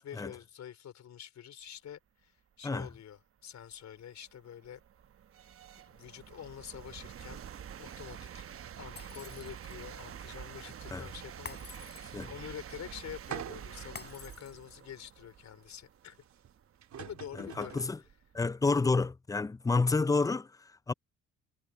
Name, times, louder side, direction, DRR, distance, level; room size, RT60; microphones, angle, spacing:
voice 1, 0.0-4.8 5.8-7.4 7.8-8.5 8.8-16.2 16.9-17.8, left 9 dB, 65° left, 4.1 m, -47 dB
sound 1, 2.9-3.0 3.6-18.4, right 9 dB, 50° right, 0.9 m, -48 dB
Shatter, 9.0-9.9 11.5-12.4 14.0-15.0, left 5 dB, 35° left, 4.7 m, -49 dB
sound 2, 13.3-13.9 14.5-14.6 16.4-16.5 16.8-18.0, right 10 dB, 65° right, 3.7 m, -43 dB
voice 2, 17.4-18.0 18.3-20.9, left 3 dB, 10° left, 0.4 m, -29 dB
cardioid pair, 90°, 30 cm